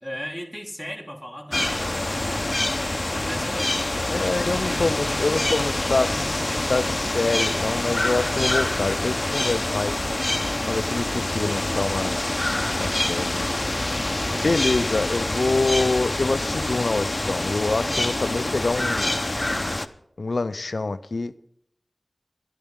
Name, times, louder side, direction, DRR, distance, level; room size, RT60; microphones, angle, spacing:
voice 1, 0.0-2.5 3.1-6.9 11.3-11.7 12.8-14.9, equal, 5° right, 2.1 m, -38 dB
sound 1, 1.5-19.9, left 1 dB, 40° left, 0.8 m, -26 dB
voice 2, 4.1-10.0 10.7-13.5 14.4-19.1 20.2-21.3, left 3 dB, 85° left, 0.5 m, -26 dB
22.5 x 11.5 x 3.7 m
wide cardioid pair, 45°, 0 cm